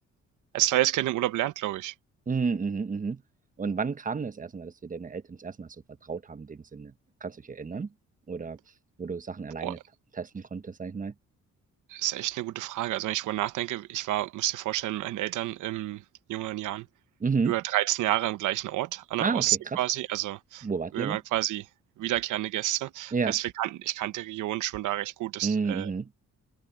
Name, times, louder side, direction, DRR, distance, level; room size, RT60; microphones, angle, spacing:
voice 1, 0.5-1.9 9.6-9.7 11.9-16.0 16.3-16.9 17.4-20.7 20.9-21.7 22.0-25.9, right 14 dB, 85° right, 1.0 m, -29 dB
voice 2, 2.3-3.2 3.6-5.8 6.0-6.9 7.2-7.9 8.3-8.6 9.0-9.8 10.2-11.1 17.2-17.5 19.2-19.5 20.6-21.2 23.1-23.4 25.4-26.1, right 5 dB, 25° right, 1.2 m, -31 dB
cardioid pair, 90°, 30 cm